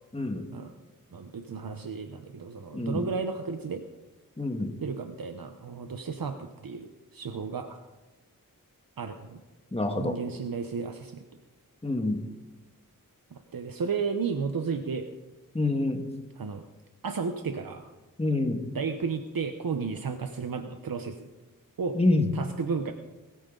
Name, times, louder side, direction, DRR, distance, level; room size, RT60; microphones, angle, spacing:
voice 1, 0.1-0.5 2.7-3.1 4.4-4.7 9.7-10.2 11.8-12.2 15.5-16.0 18.2-18.6 22.0-22.3, left 2 dB, 15° left, 4 dB, 1.9 m, -26 dB
voice 2, 1.1-3.8 4.8-7.8 9.0-9.4 10.0-11.2 13.3-15.1 16.4-16.6 17.0-17.9 18.7-21.3 21.8-22.0 22.3-22.9, right 5 dB, 80° right, 6 dB, 1.0 m, -33 dB
20.5 x 14.0 x 3.9 m, 1.2 s
wide cardioid pair, 85°, 34 cm